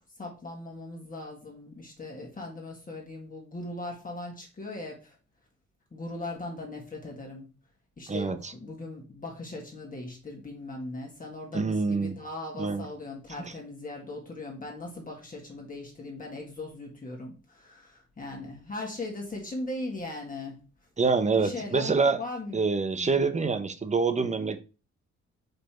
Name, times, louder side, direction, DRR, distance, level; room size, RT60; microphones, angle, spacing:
voice 1, 0.2-5.2 5.9-7.5 8.0-20.6 21.3-21.9 22.2-22.6 22.9-23.3, left 2 dB, 30° left, 2.0 m, -39 dB
voice 2, 8.1-8.5 11.5-12.2 12.6-12.9 13.4-13.5 21.0-22.2 22.5-24.6, right 4 dB, 25° right, 0.9 m, -26 dB
5.3 x 4.3 x 4.4 m
cardioid pair, 90°, 30 cm